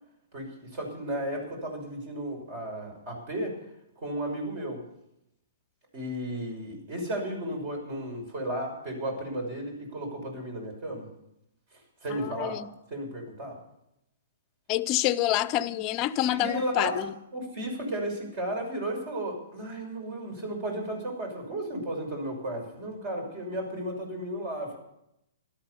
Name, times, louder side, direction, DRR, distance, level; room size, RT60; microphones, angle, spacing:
voice 1, 0.3-3.6 4.0-4.8 5.9-11.1 12.0-12.6 12.9-13.6 16.2-17.0 17.3-24.8, right 1 dB, 45° right, 5.9 m, -34 dB
voice 2, 12.1-12.7 14.7-17.1, left 13 dB, 35° left, 0.6 m, -27 dB
13.5 x 12.5 x 6.8 m
figure-of-eight pair, 120°, 0 cm